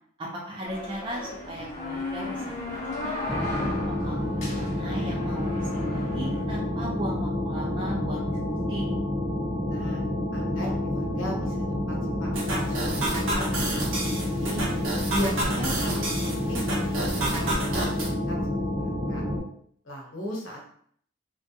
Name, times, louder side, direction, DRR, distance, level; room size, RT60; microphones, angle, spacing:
voice 1, 0.2-2.4 3.0-3.4 3.8-8.9, equal, 25° right, -4 dB, 0.4 m, -37 dB
sound 1, 0.6-6.4, left 2 dB, 40° left, 0.5 m, -35 dB
sound 2, 3.3-19.4, left 1 dB, 5° right, 1.2 m, -29 dB
voice 2, 9.7-10.0 10.3-14.6 15.1-19.2 19.8-20.6, equal, 90° left, -1 dB, 0.8 m, -37 dB
sound 3, 12.3-18.1, right 2 dB, 85° right, 0.6 m, -30 dB
2.3 x 2.2 x 2.7 m, 0.62 s
head